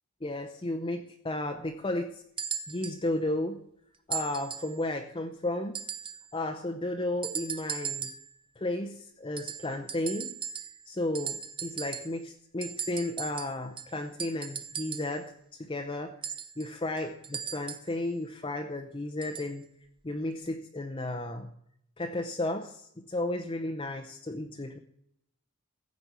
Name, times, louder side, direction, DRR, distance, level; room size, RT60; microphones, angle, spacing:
voice 1, 0.2-2.2 2.7-3.6 4.1-5.8 6.3-8.1 8.6-10.3 10.9-19.7 20.0-21.5 22.0-24.8, left 1 dB, 25° left, 3 dB, 0.7 m, -33 dB
sound 1, 2.4-3.0 4.1-4.8 5.7-6.3 7.2-8.3 9.4-10.9 11.1-12.2 12.6-15.2 16.2-18.0 19.2-19.5 20.5-20.6, right 7 dB, 25° right, 0.8 m, -38 dB
15.0 x 5.3 x 8.1 m, 0.73 s
head